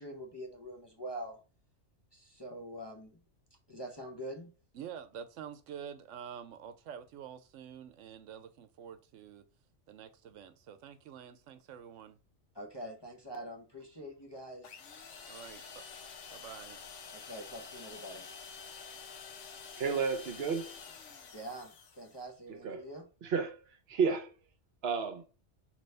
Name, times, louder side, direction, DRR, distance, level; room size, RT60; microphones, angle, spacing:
voice 1, 0.0-1.4 2.1-3.2 3.7-4.5 12.5-14.7 17.1-18.3 21.3-23.1, right 1 dB, 25° left, 0.6 m, -44 dB
voice 2, 4.7-9.4 9.9-12.2 15.3-15.6 16.3-16.8, right 8 dB, 85° right, 0.9 m, -47 dB
sound 1, 14.6-22.3, left 5 dB, 85° left, 1.1 m, -49 dB
voice 3, 19.8-20.7 22.6-22.8 23.2-23.6 23.9-24.3 24.8-25.2, right 5 dB, 60° right, 0.9 m, -31 dB
5.3 x 3.0 x 3.3 m
omnidirectional pair, 1.2 m